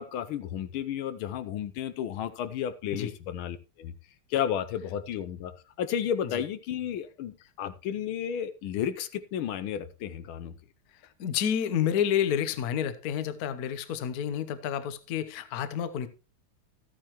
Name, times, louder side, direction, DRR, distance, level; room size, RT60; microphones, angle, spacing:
voice 1, 0.0-3.9 4.3-5.5 5.8-10.5, left 9 dB, 80° left, 11 dB, 1.5 m, -32 dB
voice 2, 11.2-16.1, left 9 dB, 60° left, 12 dB, 1.1 m, -29 dB
13.5 x 8.9 x 3.0 m, 0.30 s
omnidirectional pair, 2.3 m